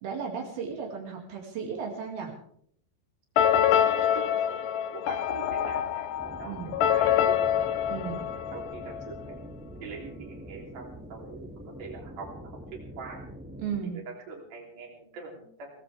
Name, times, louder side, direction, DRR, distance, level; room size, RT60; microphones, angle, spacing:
voice 1, 0.0-2.3 6.5-6.7 7.9-8.2 13.6-14.0, right 6 dB, 85° right, 0 dB, 4.3 m, -35 dB
sound 1, 3.4-9.1, left 9 dB, 75° left, 2.2 m, -26 dB
voice 2, 3.8-4.6 4.9-7.5 8.1-9.4 9.8-13.2 13.8-15.8, right 5 dB, 60° right, 0 dB, 4.7 m, -44 dB
sound 2, 6.2-13.8, equal, 5° right, 1.5 m, -44 dB
22.5 x 18.0 x 3.5 m, 0.63 s
omnidirectional pair, 4.2 m